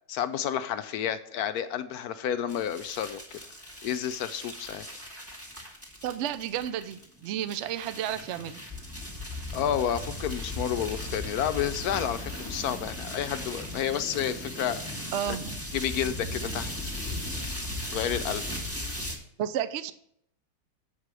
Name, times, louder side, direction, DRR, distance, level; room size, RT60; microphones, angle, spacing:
voice 1, 0.1-3.4 3.8-4.9 9.5-15.4 15.7-16.9 17.9-18.6, left 9 dB, 70° left, 10 dB, 1.0 m, -31 dB
sound 1, 2.5-19.2, left 1 dB, 10° right, 1.5 m, -37 dB
voice 2, 6.0-8.6 15.1-15.5 19.4-19.9, right 10 dB, 80° right, 13 dB, 0.6 m, -32 dB
8.1 x 5.0 x 6.1 m, 0.70 s
omnidirectional pair, 1.8 m